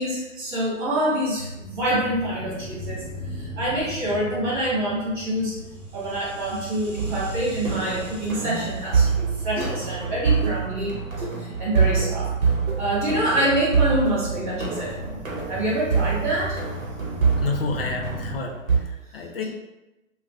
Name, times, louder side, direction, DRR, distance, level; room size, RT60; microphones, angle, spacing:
voice 1, 0.0-3.0 3.3-5.5 5.9-11.0 11.4-12.3 12.8-15.2 15.5-16.6, right 1 dB, 20° right, -8 dB, 1.5 m, -26 dB
sound 1, 1.6-18.4, equal, 5° left, 0.9 m, -39 dB
sound 2, 7.0-18.8, right 5 dB, 90° right, 0.9 m, -26 dB
sound 3, 8.4-8.8 9.5-9.7 10.4-10.5 11.2-11.3 11.9-12.0 12.7-12.8 13.4-13.5 14.0-14.1 14.7-14.8 15.4-15.5, equal, 40° right, 0.7 m, -33 dB
voice 2, 17.4-18.5 19.1-19.4, left 4 dB, 45° left, 2 dB, 0.5 m, -29 dB
3.7 x 2.2 x 2.4 m, 1.0 s
hypercardioid pair, 140°, 40 cm